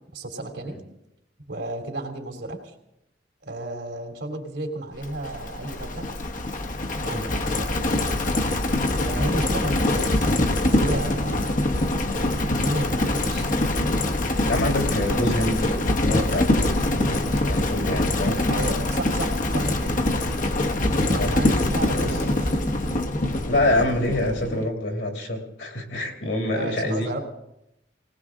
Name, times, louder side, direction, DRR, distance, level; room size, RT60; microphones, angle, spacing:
voice 1, 0.1-0.8 1.5-2.7 3.4-6.1 7.0-8.1 9.0-11.7 12.3-13.6 18.5-20.2 21.0-22.9 26.5-27.2, right 2 dB, 75° right, 2 dB, 3.0 m, -33 dB
Livestock farm animals working animals, 5.0-24.7, left 1 dB, 45° left, 1.1 m, -24 dB
voice 2, 14.5-18.4 21.2-21.3 21.9-22.1 23.5-27.2, left 1 dB, 70° left, 2 dB, 2.8 m, -26 dB
20.0 x 18.5 x 3.7 m, 0.87 s
head